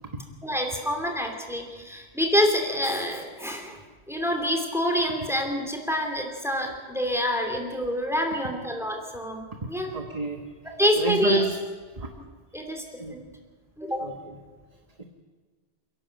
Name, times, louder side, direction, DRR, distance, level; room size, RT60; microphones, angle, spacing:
voice 1, 0.4-3.8 4.1-10.0 10.6-11.4 12.2-12.3 12.5-12.8 13.1-13.2 13.8-14.1, equal, ahead, 3 dB, 3.0 m, -27 dB
voice 2, 9.6-10.4 11.0-11.6 12.0-12.1 13.0-13.2 14.0-14.4 15.0-15.1, right 2 dB, 35° right, 4 dB, 1.4 m, -29 dB
28.5 x 11.5 x 8.0 m, 1.5 s
omnidirectional pair, 1.2 m